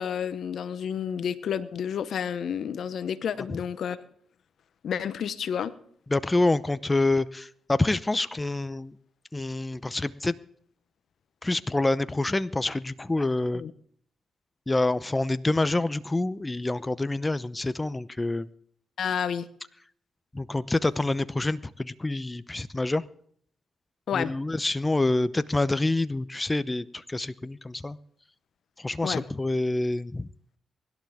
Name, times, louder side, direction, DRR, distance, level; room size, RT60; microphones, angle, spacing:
voice 1, 0.0-4.0 4.8-5.7 13.5-13.7 19.0-19.5 24.1-24.3 29.0-29.2, left 8 dB, 70° left, 15 dB, 0.9 m, -30 dB
voice 2, 6.1-8.9 9.3-10.4 11.4-13.6 14.7-18.5 20.3-23.0 24.1-28.0 28.8-30.3, left 2 dB, 20° left, 15 dB, 0.8 m, -27 dB
24.0 x 12.0 x 3.6 m, 0.63 s
supercardioid pair, 50°, 0 cm